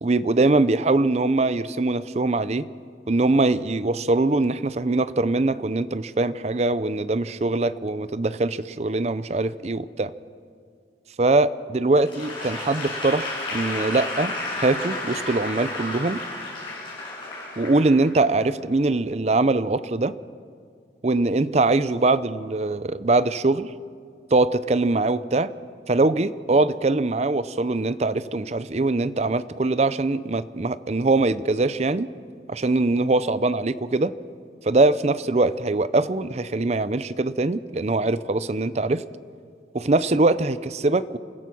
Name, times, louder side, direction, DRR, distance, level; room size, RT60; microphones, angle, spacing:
voice 1, 0.0-2.7 3.1-10.1 11.2-14.3 14.6-16.2 17.6-20.1 21.0-23.7 24.3-25.5 25.9-32.1 32.5-34.1 34.6-39.0 39.7-41.2, right 2 dB, 40° right, 15 dB, 0.6 m, -22 dB
Applause / Crowd, 12.0-18.4, left 2 dB, 30° left, 7.3 m, -32 dB
28.0 x 15.5 x 6.2 m, 2.3 s
head